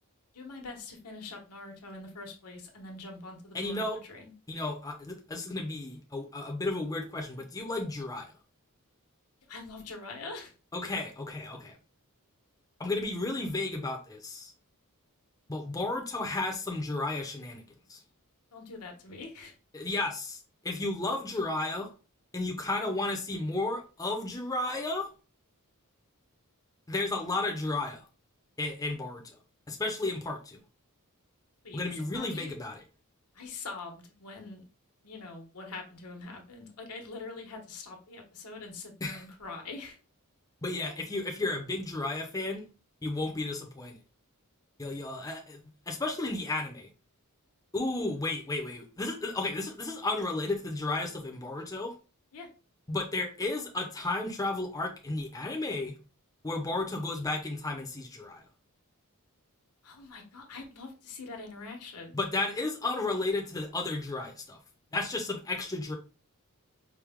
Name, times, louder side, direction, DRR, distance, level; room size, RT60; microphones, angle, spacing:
voice 1, 0.3-3.8 4.1-4.3 9.5-10.5 18.5-19.5 31.6-32.5 33.3-34.6 35.0-40.0 52.3-52.5 59.8-62.1, left 3 dB, 80° left, 3 dB, 1.0 m, -44 dB
voice 2, 3.5-4.0 4.5-8.3 10.7-11.8 12.8-14.5 15.5-17.6 17.9-18.0 19.7-21.9 22.3-25.1 26.9-28.1 28.6-29.4 29.7-30.6 31.7-32.8 39.0-39.2 40.6-42.7 43.0-44.0 44.8-45.6 45.9-46.9 47.7-51.9 52.9-56.0 56.4-58.4 62.1-64.6 64.9-65.9, left 2 dB, 15° left, 2 dB, 0.6 m, -33 dB
4.6 x 2.2 x 3.5 m, 0.34 s
head